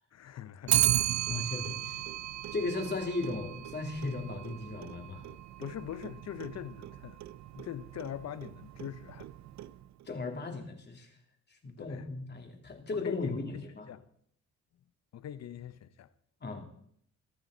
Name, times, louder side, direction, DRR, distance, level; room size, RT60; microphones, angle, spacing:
voice 1, 0.1-1.1 5.6-7.2 7.5-9.3 11.8-12.1 12.9-14.1 15.1-16.1, left 10 dB, 60° left, 0.8 m, -42 dB
Clock, 0.7-10.0, right 13 dB, 65° right, 0.6 m, -35 dB
voice 2, 1.3-2.0 2.5-5.3 10.1-11.1 11.5-13.9 16.4-16.7, left 3 dB, 35° left, 2.8 m, -36 dB
23.0 x 9.0 x 4.0 m
cardioid pair, 90°, 30 cm